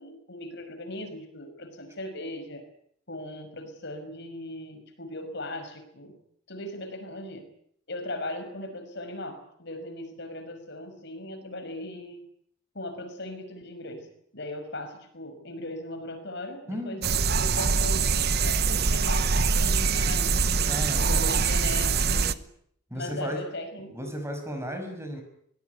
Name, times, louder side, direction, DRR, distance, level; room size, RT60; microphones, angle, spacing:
voice 1, 0.0-2.6 3.1-6.2 6.5-7.5 7.9-12.3 12.7-14.1 14.3-20.7 21.0-22.5 22.9-24.2, left 1 dB, 55° left, 7 dB, 5.9 m, -38 dB
voice 2, 16.7-17.0 20.7-21.3 22.9-23.4 23.9-25.2, equal, 15° right, 5 dB, 6.1 m, -34 dB
sound 1, 17.0-22.3, right 5 dB, 50° right, 1.1 m, -24 dB
24.5 x 20.0 x 9.5 m, 0.67 s
head